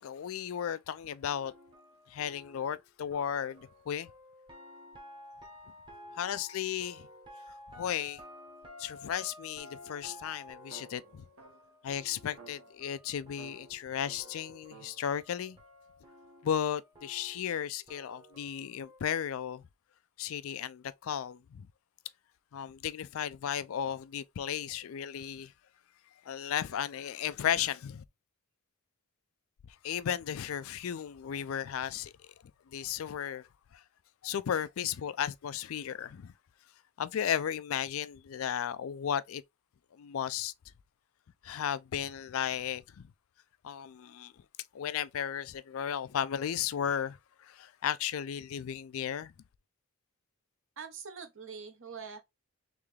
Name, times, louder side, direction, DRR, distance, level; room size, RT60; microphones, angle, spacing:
voice 1, 0.0-1.5 2.1-4.1 6.1-7.1 7.7-8.2 8.8-11.3 11.8-15.6 16.4-19.6 20.2-21.7 22.5-25.5 26.3-28.0 29.8-32.3 32.7-33.5 33.7-33.8 34.2-36.3 37.0-39.4 40.0-40.5 41.4-43.1 43.6-44.3 44.7-49.3, left 9 dB, 70° left, 0.4 m, -35 dB
sound 1, 1.2-13.9 14.2-19.0, left 1 dB, 20° right, 1.0 m, -53 dB
sound 2, 10.0-11.8 12.4-15.0, right 5 dB, 80° right, 1.1 m, -55 dB
voice 2, 50.8-52.2, right 6 dB, 60° right, 0.9 m, -44 dB
3.6 x 3.3 x 3.3 m
head